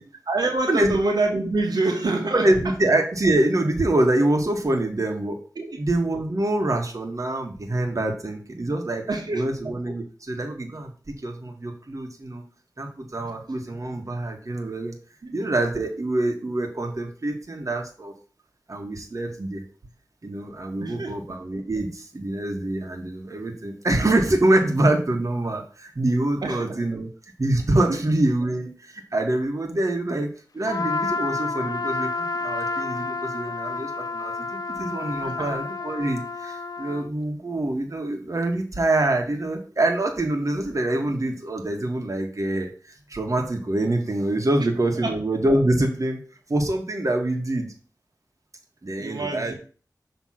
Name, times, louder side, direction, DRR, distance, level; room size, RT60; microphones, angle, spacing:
voice 1, 0.3-2.7 5.5-5.8 9.1-9.5 13.2-13.3 15.2-15.4 20.8-21.2 26.4-26.9 27.9-28.0 35.2-35.5 44.5-44.7 45.0-45.2 49.0-49.5, right 2 dB, 85° right, 0 dB, 1.2 m, -26 dB
voice 2, 2.3-5.4 5.8-9.0 9.3-12.4 12.8-14.9 15.3-18.1 18.7-19.6 20.2-27.1 27.4-34.5 34.8-46.2 46.5-47.7 48.8-49.5, right 1 dB, 50° right, 2 dB, 1.4 m, -25 dB
Trumpet, 30.7-37.1, left 3 dB, 65° left, 0.4 m, -30 dB
6.3 x 3.3 x 5.8 m, 0.39 s
wide cardioid pair, 60°, 7 cm